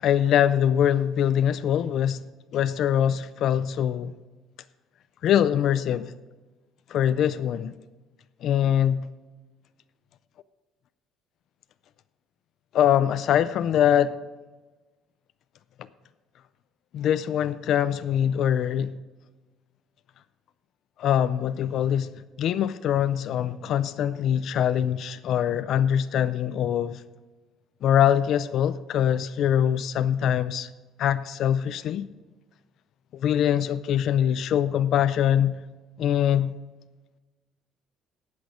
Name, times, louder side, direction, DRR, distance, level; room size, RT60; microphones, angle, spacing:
voice 1, 0.0-2.2 2.5-4.1 5.2-6.1 6.9-7.7 8.4-9.1 12.7-14.2 16.9-18.9 21.0-27.0 27.8-30.7 31.0-32.1 33.1-35.6 36.0-36.5, left 10 dB, 50° left, 0.4 m, -23 dB
18.0 x 6.2 x 5.0 m
cardioid pair, 165°, 0 cm